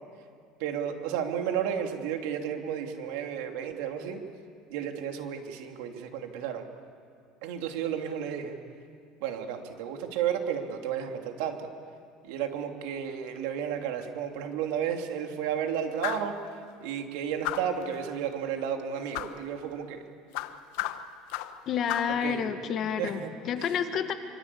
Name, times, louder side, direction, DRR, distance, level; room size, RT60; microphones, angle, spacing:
voice 1, 0.6-4.2 4.7-6.7 7.4-8.6 9.2-11.7 12.2-20.1 22.1-22.5 22.9-23.3 23.6-23.8, right 8 dB, 70° right, 4 dB, 2.8 m, -32 dB
sound 1, 16.0-16.3 17.4-17.8 19.1-19.4 20.3-21.6 21.9-22.2, left 14 dB, 70° left, 1.2 m, -34 dB
voice 2, 21.7-23.2 23.5-24.1, left 8 dB, 35° left, 8 dB, 1.6 m, -29 dB
26.0 x 25.5 x 8.6 m, 2.3 s
cardioid pair, 165°, 0 cm